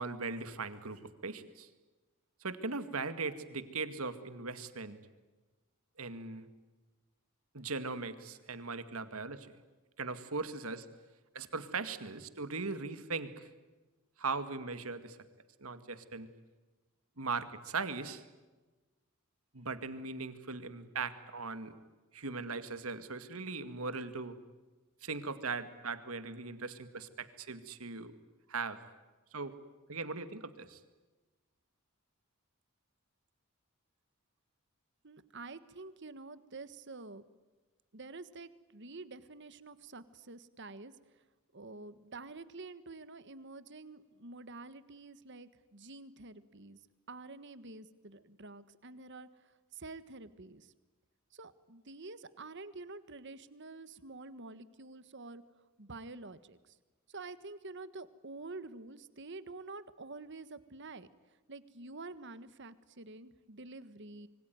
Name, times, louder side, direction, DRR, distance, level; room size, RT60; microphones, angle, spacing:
voice 1, 0.0-1.7 2.4-5.0 6.0-6.5 7.5-9.5 10.0-10.9 11.3-13.5 14.2-15.2 15.6-16.3 17.2-18.2 19.5-21.7 22.1-24.4 25.0-28.1 28.5-28.8 29.3-29.6 29.9-30.8, right 4 dB, 85° right, 11 dB, 2.2 m, -39 dB
voice 2, 35.0-37.3 37.9-40.9 41.5-46.8 47.1-50.7 51.3-55.4 55.8-56.7 57.1-61.1 61.5-64.3, right 3 dB, 55° right, 14 dB, 1.5 m, -48 dB
26.5 x 24.0 x 9.5 m, 1.2 s
head